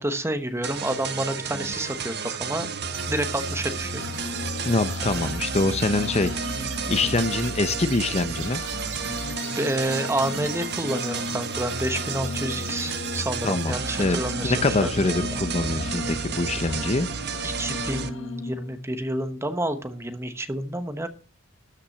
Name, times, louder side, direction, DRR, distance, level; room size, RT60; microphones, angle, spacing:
voice 1, 0.0-2.7 3.1-4.0 9.5-15.1 17.4-21.1, right 1 dB, 15° right, 1.1 m, -29 dB
sound 1, 0.6-18.1, right 5 dB, 50° right, 1.1 m, -32 dB
sound 2, 2.9-15.0, right 7 dB, 75° right, 6.0 m, -43 dB
sound 3, 4.0-18.8, left 3 dB, 65° left, 1.6 m, -37 dB
voice 2, 4.6-8.6 13.4-17.1, left 3 dB, 30° left, 0.7 m, -25 dB
13.0 x 6.0 x 7.1 m
head